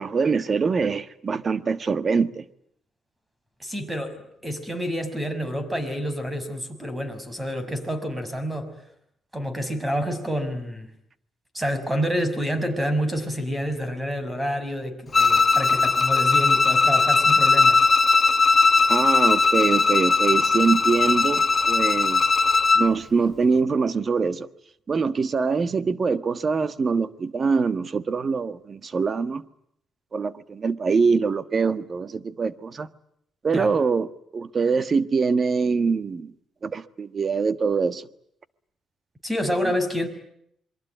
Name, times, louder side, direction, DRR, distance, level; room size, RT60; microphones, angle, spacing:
voice 1, 0.0-2.4 18.9-22.2 22.7-24.5 24.9-29.4 30.1-32.9 33.4-34.1 34.3-36.3 36.6-38.0, right 5 dB, 40° right, 1.4 m, -24 dB
voice 2, 3.6-8.7 9.3-10.9 11.5-17.8 33.5-33.7 39.2-40.1, equal, 15° right, 5.9 m, -28 dB
Bowed string instrument, 15.1-22.9, left 4 dB, 35° left, 1.1 m, -19 dB
27.5 x 22.5 x 9.2 m
cardioid pair, 90°, 0 cm